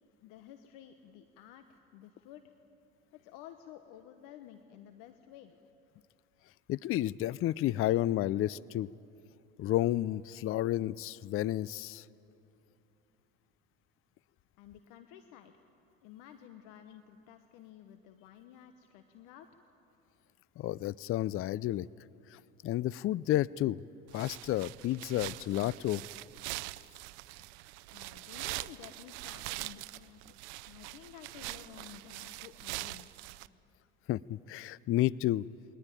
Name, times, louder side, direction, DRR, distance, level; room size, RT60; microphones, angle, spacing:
voice 1, 0.2-2.5 3.2-5.5 14.6-15.6 16.0-19.5 27.9-30.3 30.6-33.1, left 10 dB, 75° left, 8 dB, 1.1 m, -53 dB
voice 2, 6.7-8.9 9.6-12.0 20.6-21.9 22.3-23.8 24.1-26.0 34.1-35.5, left 14 dB, 40° left, 22 dB, 0.4 m, -31 dB
sound 1, 24.1-33.5, right 21 dB, 80° right, 0.6 m, -43 dB
21.5 x 18.5 x 9.0 m, 2.7 s
supercardioid pair, 85°, 33 cm